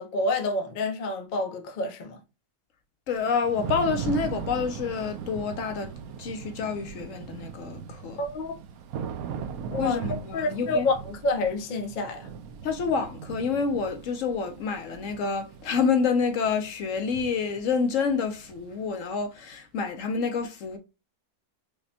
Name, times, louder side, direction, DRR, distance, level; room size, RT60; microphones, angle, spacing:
voice 1, 0.0-2.2 8.2-8.6 9.7-10.0 10.3-12.3, left 2 dB, 50° left, 0.6 m, -28 dB
voice 2, 3.1-5.9 6.2-8.2 9.8-10.9 12.6-20.8, left 5 dB, 70° left, 0.9 m, -28 dB
Thunder / Rain, 3.2-18.9, right 7 dB, 75° right, 1.0 m, -39 dB
4.9 x 2.1 x 2.7 m
omnidirectional pair, 1.5 m